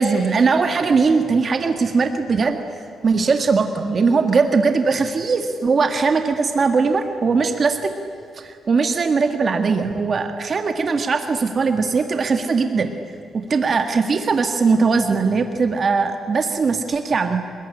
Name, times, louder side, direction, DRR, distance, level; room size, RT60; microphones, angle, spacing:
voice 1, 0.0-2.6 3.0-7.9 8.4-12.9 13.3-17.4, right 4 dB, 40° right, 6 dB, 1.7 m, -20 dB
27.0 x 20.5 x 9.9 m, 2.5 s
cardioid pair, 140°, 0 cm